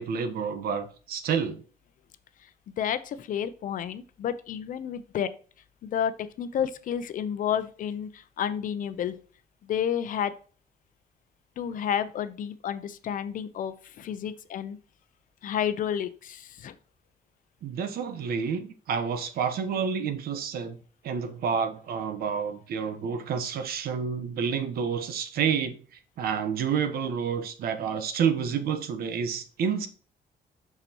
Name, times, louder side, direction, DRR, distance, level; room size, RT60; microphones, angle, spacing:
voice 1, 0.0-1.6 17.6-20.8 21.0-25.8 26.2-29.9, right 7 dB, 80° right, 1.0 m, -29 dB
voice 2, 2.8-5.3 5.8-9.1 9.6-10.3 11.6-14.8 15.4-16.7, left 9 dB, 60° left, 0.6 m, -30 dB
6.9 x 5.9 x 2.9 m
cardioid pair, 145°, 16 cm